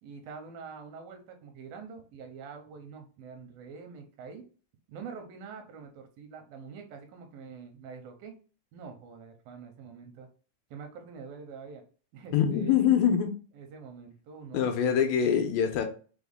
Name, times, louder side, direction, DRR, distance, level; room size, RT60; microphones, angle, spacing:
voice 1, 0.0-4.5 4.9-8.4 8.7-10.3 10.7-11.8 12.1-12.8 13.6-15.3, right 5 dB, 85° right, 2.5 m, -45 dB
voice 2, 12.3-13.4 14.5-15.8, left 8 dB, 85° left, 2.3 m, -24 dB
6.0 x 2.1 x 3.4 m
omnidirectional pair, 4.1 m